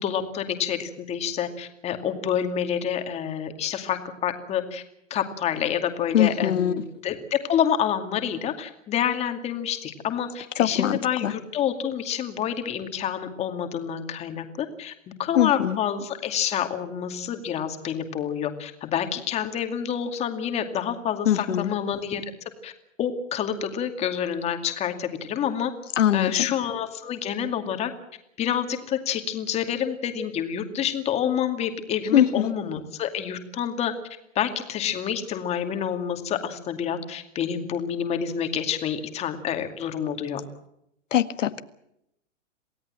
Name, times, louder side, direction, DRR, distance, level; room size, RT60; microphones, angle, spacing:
voice 1, 0.0-4.8 5.1-14.9 15.2-22.2 22.6-22.7 23.0-25.7 26.1-27.9 28.4-33.9 34.3-40.4, left 9 dB, 15° left, 6 dB, 2.4 m, -28 dB
voice 2, 6.1-6.7 10.6-11.3 15.4-15.8 21.3-21.7 26.0-26.5 32.1-32.5 41.1-41.6, left 10 dB, 75° left, 10 dB, 1.9 m, -22 dB
28.0 x 17.0 x 7.6 m, 0.80 s
hypercardioid pair, 160°, 38 cm